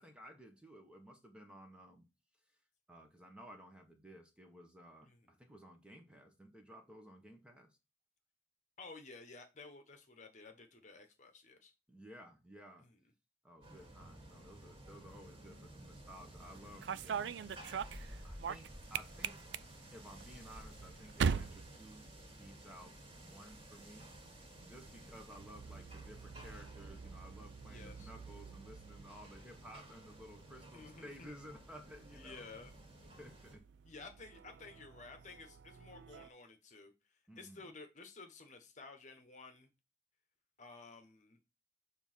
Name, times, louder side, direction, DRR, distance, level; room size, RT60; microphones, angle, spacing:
voice 1, 0.0-2.1 2.9-7.8 11.9-12.9 13.4-17.4 18.2-19.4 19.9-24.1 24.7-32.4 33.2-33.6 37.3-37.7, equal, 5° right, 1.1 m, -55 dB
voice 2, 5.0-5.3 8.8-11.7 12.8-13.0 24.9-25.2 27.6-28.1 30.7-31.3 32.1-32.8 33.8-39.7 40.6-41.4, left 3 dB, 40° left, 1.1 m, -54 dB
sound 1, 13.6-33.6, right 1 dB, 35° right, 2.1 m, -54 dB
sound 2, 16.5-22.7 23.0-23.6 24.6-36.3, right 6 dB, 70° right, 0.4 m, -44 dB
6.8 x 3.5 x 4.3 m
head